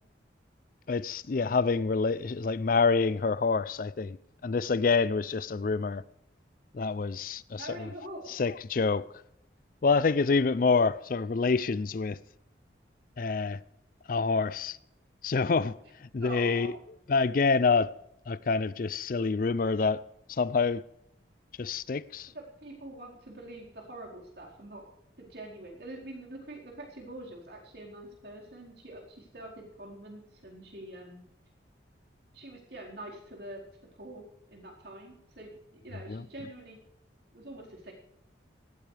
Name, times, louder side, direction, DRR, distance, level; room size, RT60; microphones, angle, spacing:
voice 1, 0.9-4.2 4.4-6.0 6.7-7.9 8.3-9.0 9.8-12.2 13.2-13.6 14.1-14.8 15.2-15.7 16.0-16.8 17.1-17.9 18.3-20.0 20.3-20.8 21.6-22.3 36.1-36.2, left 4 dB, 45° left, 0.4 m, -27 dB
voice 2, 7.6-8.3 16.2-16.8 22.3-24.8 25.2-31.2 32.3-33.6 34.0-34.2 34.5-36.8 37.3-37.9, right 1 dB, 60° right, 4.5 m, -45 dB
18.0 x 14.0 x 3.4 m
head